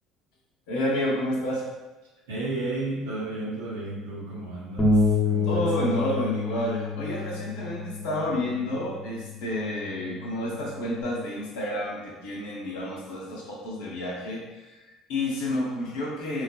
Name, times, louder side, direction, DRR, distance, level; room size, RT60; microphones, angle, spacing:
voice 1, 0.7-1.7 5.5-16.4, left 1 dB, 70° left, -3 dB, 0.7 m, -30 dB
voice 2, 2.3-6.0, right 2 dB, 80° right, -5 dB, 0.8 m, -33 dB
Bass guitar, 4.8-11.0, left 3 dB, 30° left, 0.7 m, -28 dB
3.1 x 2.3 x 2.2 m, 1.1 s
hypercardioid pair, 65°, 0 cm